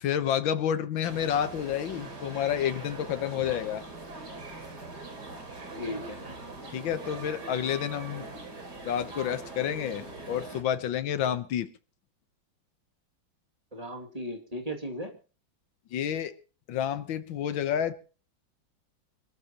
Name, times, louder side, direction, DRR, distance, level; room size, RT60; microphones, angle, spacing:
voice 1, 0.0-3.8 6.7-8.3 8.8-11.7 15.9-16.3 16.7-17.9, left 9 dB, 75° left, 11 dB, 1.8 m, -29 dB
sound 1, 1.1-10.6, right 3 dB, 55° right, 3.5 m, -42 dB
voice 2, 5.8-6.4 13.7-15.1, equal, 20° right, 2 dB, 2.5 m, -36 dB
25.0 x 13.5 x 3.0 m, 0.36 s
omnidirectional pair, 2.1 m